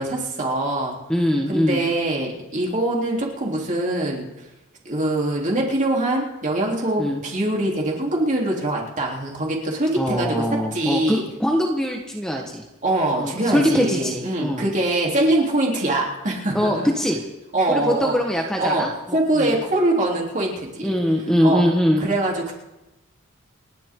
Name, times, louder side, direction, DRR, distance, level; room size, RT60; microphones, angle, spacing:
voice 1, 0.0-1.0 1.5-4.3 4.9-11.2 12.8-16.9 17.5-18.2 18.6-18.9 19.1-20.9 21.4-21.6 22.0-22.5, right 1 dB, 35° right, -2 dB, 3.4 m, -23 dB
voice 2, 1.1-1.8 7.0-7.2 10.0-12.6 13.2-14.7 16.5-17.2 17.7-19.6 20.8-22.0, equal, 5° left, 0 dB, 1.3 m, -22 dB
29.0 x 11.5 x 3.8 m, 0.99 s
head